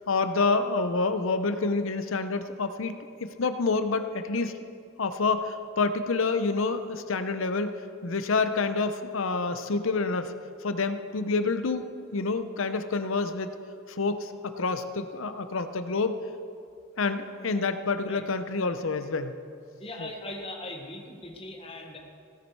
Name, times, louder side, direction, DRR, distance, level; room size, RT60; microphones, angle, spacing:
voice 1, 0.1-3.0 3.4-4.5 5.0-7.7 8.0-10.3 10.6-11.9 12.1-13.5 13.9-16.2 17.0-19.3 20.0-20.1, left 4 dB, 70° left, 10 dB, 0.7 m, -28 dB
voice 2, 19.8-22.0, left 1 dB, 25° left, 2 dB, 1.2 m, -39 dB
16.5 x 9.7 x 4.7 m, 2.3 s
head